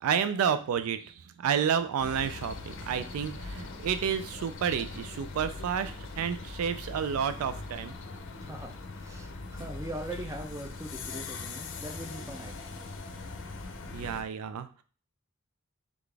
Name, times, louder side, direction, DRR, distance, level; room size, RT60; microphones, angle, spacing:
voice 1, 0.0-8.0 13.9-14.8, right 7 dB, 75° right, 11 dB, 0.3 m, -30 dB
sound 1, 2.0-14.2, left 3 dB, 60° left, 0.6 m, -41 dB
voice 2, 8.4-12.7, right 1 dB, 15° right, 3 dB, 0.6 m, -41 dB
3.9 x 3.5 x 3.3 m, 0.42 s
head